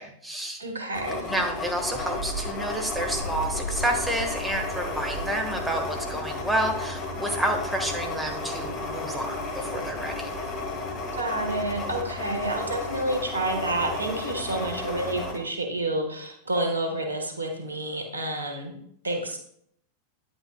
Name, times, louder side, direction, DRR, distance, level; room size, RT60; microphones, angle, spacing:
voice 1, 0.0-0.6 1.2-10.3, right 1 dB, 10° right, 2 dB, 1.4 m, -29 dB
voice 2, 0.6-1.3 11.1-18.8 19.0-19.4, right 1 dB, 75° right, 4 dB, 1.3 m, -29 dB
sound 1, 0.9-15.4, left 2 dB, 35° left, 1.6 m, -33 dB
9.5 x 8.7 x 2.3 m, 0.67 s
figure-of-eight pair, 90°, 0 cm